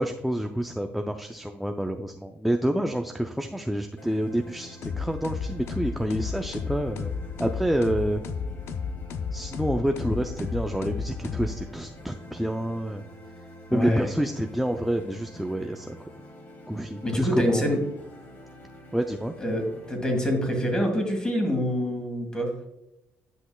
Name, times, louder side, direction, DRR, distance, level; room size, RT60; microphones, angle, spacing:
voice 1, 0.0-7.1 7.4-8.2 9.3-13.0 13.7-16.1 16.7-17.7 18.9-19.3, right 1 dB, ahead, 5 dB, 0.4 m, -28 dB
sound 1, 4.0-20.0, left 1 dB, 45° left, 1.7 m, -47 dB
sound 2, 4.8-12.0, left 5 dB, 65° left, 0.6 m, -33 dB
voice 2, 13.7-14.1 17.0-17.8 19.4-22.5, equal, 15° left, 3 dB, 1.9 m, -26 dB
9.9 x 5.9 x 2.3 m, 0.89 s
cardioid pair, 130°, 5 cm